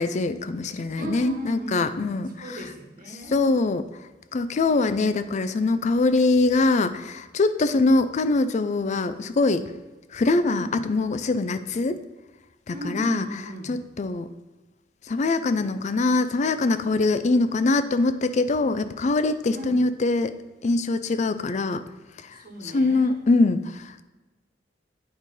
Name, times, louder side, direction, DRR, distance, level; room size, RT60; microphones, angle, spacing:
voice 1, 0.0-2.3 3.3-3.8 4.3-9.7 10.1-12.0 12.7-13.3 13.7-14.3 15.1-20.3 20.6-21.8 22.7-23.6, left 3 dB, 40° left, 11 dB, 0.4 m, -23 dB
voice 2, 1.0-1.9 2.2-3.4 10.5-10.8 12.7-13.7 19.5-19.8 22.3-23.2, right 1 dB, 50° right, 0 dB, 1.3 m, -36 dB
8.8 x 3.2 x 5.3 m, 1.1 s
head